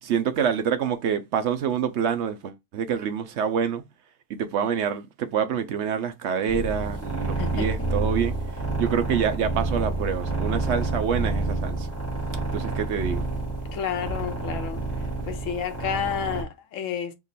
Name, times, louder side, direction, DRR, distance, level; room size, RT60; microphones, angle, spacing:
voice 1, 0.0-3.8 4.3-11.9 12.5-13.3, right 7 dB, 65° right, 0.8 m, -27 dB
sound 1, 6.5-16.4, right 2 dB, 10° left, 1.5 m, -29 dB
voice 2, 13.7-14.8 15.3-17.1, left 8 dB, 75° left, 1.1 m, -30 dB
3.7 x 3.0 x 4.1 m
omnidirectional pair, 1.3 m